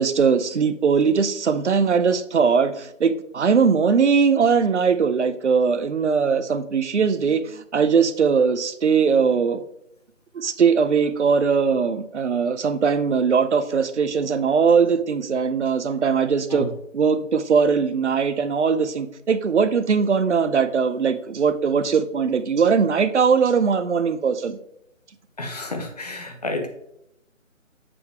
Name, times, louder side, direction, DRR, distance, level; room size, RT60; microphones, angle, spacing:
voice 1, 0.0-9.6 10.3-16.7 16.9-24.6, right 6 dB, 60° right, 11 dB, 0.7 m, -20 dB
voice 2, 25.4-26.7, left 2 dB, 30° left, 4 dB, 0.8 m, -30 dB
7.0 x 5.1 x 3.4 m, 0.78 s
figure-of-eight pair, 160°, 39 cm